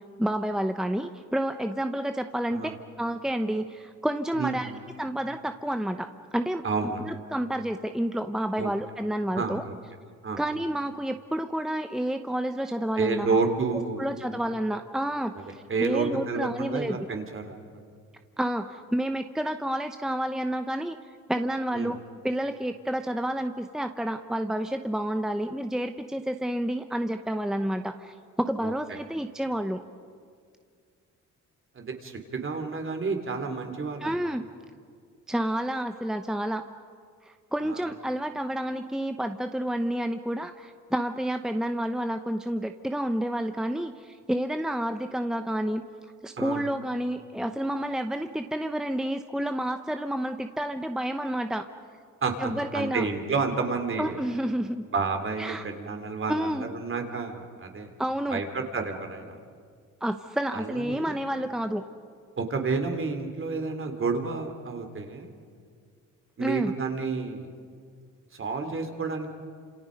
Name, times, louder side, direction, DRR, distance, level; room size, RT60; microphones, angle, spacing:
voice 1, 0.2-2.7 3.0-4.7 5.0-6.6 7.1-9.6 10.4-13.4 14.0-17.0 18.4-21.0 21.3-22.0 22.2-29.8 34.0-34.4 35.3-36.6 37.2-45.8 46.2-51.7 52.4-53.1 54.0-54.9 55.4-55.7 56.3-56.7 58.0-58.4 60.0-61.8 66.4-66.7, right 1 dB, ahead, 7 dB, 0.9 m, -29 dB
voice 2, 4.3-4.8 6.6-7.1 8.6-8.7 9.3-9.8 10.2-10.4 13.0-14.1 15.7-17.6 21.7-22.0 28.6-29.0 31.8-34.3 37.6-37.9 46.4-46.7 52.2-54.2 54.9-57.9 58.3-59.4 60.5-61.2 62.4-65.3 66.4-67.5 68.3-69.3, right 4 dB, 45° right, 5 dB, 3.4 m, -30 dB
29.0 x 27.5 x 5.3 m, 2.1 s
cardioid pair, 90°, 30 cm